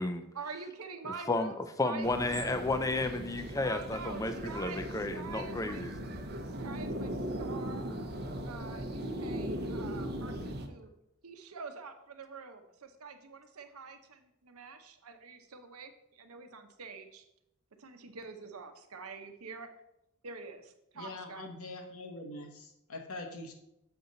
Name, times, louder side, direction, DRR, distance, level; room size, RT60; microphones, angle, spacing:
voice 1, 0.3-1.6 1.8-2.1 3.6-4.8 5.1-5.8 6.5-7.9 8.4-10.9 11.2-17.2 17.8-19.8 20.2-21.5, right 4 dB, 90° right, 7 dB, 0.8 m, -46 dB
voice 2, 1.8-5.9, left 2 dB, 15° left, 8 dB, 0.4 m, -32 dB
sound 1, 2.0-10.7, right 1 dB, 45° right, 0.7 m, -38 dB
voice 3, 20.9-23.5, left 2 dB, 85° left, 4 dB, 1.1 m, -43 dB
7.1 x 5.3 x 3.9 m, 0.82 s
head